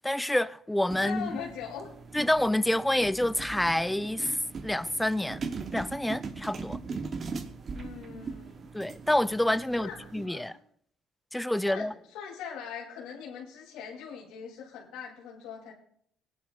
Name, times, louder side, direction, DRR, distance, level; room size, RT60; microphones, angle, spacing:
voice 1, 0.0-1.3 2.1-4.4 4.6-5.4 5.7-6.8 8.7-10.5 11.3-11.9, left 1 dB, 5° left, 0.4 m, -28 dB
sound 1, 0.9-10.3, right 4 dB, 35° right, 1.0 m, -40 dB
voice 2, 1.0-1.9 7.7-8.7 9.7-10.6 11.6-15.7, left 7 dB, 90° left, 2.8 m, -41 dB
22.5 x 10.5 x 2.4 m
cardioid pair, 125°, 0 cm